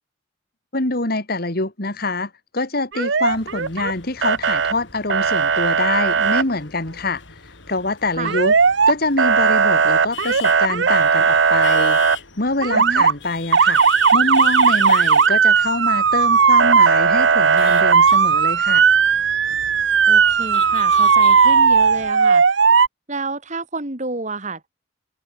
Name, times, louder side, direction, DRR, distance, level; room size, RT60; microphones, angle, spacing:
voice 1, 0.7-7.2 7.7-8.5 8.9-12.0 12.4-13.8 14.1-18.8, left 2 dB, 50° left, 2.4 m, -25 dB
Motor vehicle (road) / Siren, 2.9-3.9 4.2-4.7 5.1-6.4 8.2-8.9 9.2-12.2 12.6-13.1 13.5-22.9, right 6 dB, 60° right, 0.8 m, -16 dB
sound 1, 3.3-22.1, left 7 dB, 65° left, 5.3 m, -40 dB
voice 2, 12.7-13.1 20.1-22.7 23.1-24.7, right 3 dB, 35° right, 2.6 m, -29 dB
head